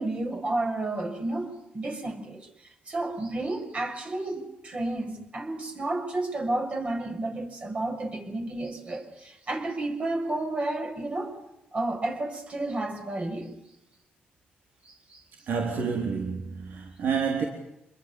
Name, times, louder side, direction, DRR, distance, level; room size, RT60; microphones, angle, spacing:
voice 1, 0.0-2.5 2.9-11.3 11.7-13.6 14.8-15.2, right 2 dB, 40° right, 6.7 m, -31 dB
voice 2, 15.5-17.5, right 6 dB, 70° right, 4.0 m, -29 dB
27.0 x 21.5 x 7.1 m
cardioid pair, 85°, 4 cm